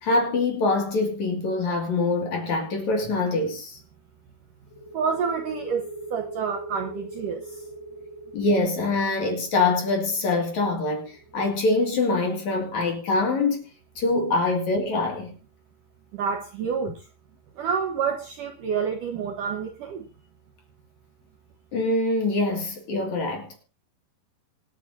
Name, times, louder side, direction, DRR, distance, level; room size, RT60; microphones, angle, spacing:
voice 1, 0.0-3.8 8.3-13.6 14.0-15.3 21.7-23.6, left 3 dB, 45° left, 3.2 m, -24 dB
sound 1, 4.7-12.1, right 2 dB, 75° left, 3.0 m, -41 dB
voice 2, 4.9-7.6 16.1-17.1 17.6-20.1, right 6 dB, 70° right, 2.1 m, -28 dB
25.5 x 9.1 x 2.7 m
omnidirectional pair, 5.2 m